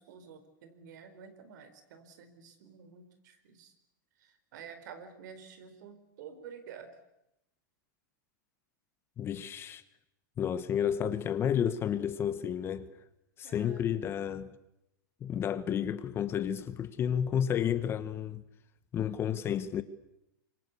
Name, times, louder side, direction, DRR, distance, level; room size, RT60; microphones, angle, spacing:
voice 1, 0.0-3.7 4.2-7.0 13.4-13.9, right 7 dB, 60° right, 4.4 m, -50 dB
voice 2, 9.2-9.8 10.4-12.9 13.4-14.5 15.2-18.4 18.9-19.8, left 9 dB, 20° left, 1.1 m, -31 dB
26.0 x 23.5 x 8.3 m
supercardioid pair, 145°, 11 cm